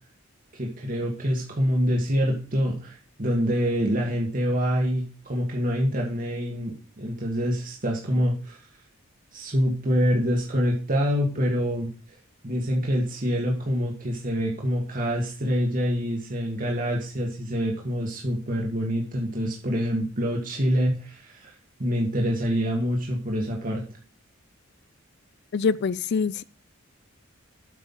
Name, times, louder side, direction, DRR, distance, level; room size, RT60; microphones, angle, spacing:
voice 1, 0.5-8.6 9.3-11.9 12.4-21.5 21.8-23.8, equal, 40° right, 1.8 m, -26 dB
voice 2, 25.5-26.4, left 5 dB, 55° left, 0.4 m, -24 dB
8.4 x 5.6 x 5.6 m
head